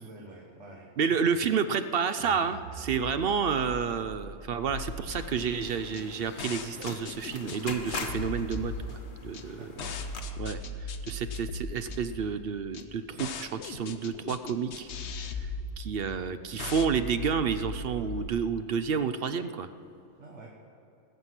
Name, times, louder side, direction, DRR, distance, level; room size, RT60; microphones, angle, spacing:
voice 1, 0.0-1.4 9.5-10.0 20.2-20.5, right 2 dB, 75° right, -1 dB, 1.7 m, -48 dB
voice 2, 1.0-9.7 10.4-14.9 15.4-15.5 15.8-19.7, right 6 dB, 60° right, 11 dB, 0.7 m, -30 dB
sound 1, 2.2-8.5, equal, 85° left, 1.8 m, -46 dB
sound 2, 4.7-18.3, left 2 dB, 70° left, 1.1 m, -38 dB
sound 3, 5.2-10.2, left 3 dB, 45° left, 1.2 m, -42 dB
19.5 x 8.0 x 5.9 m, 2.8 s
omnidirectional pair, 1.2 m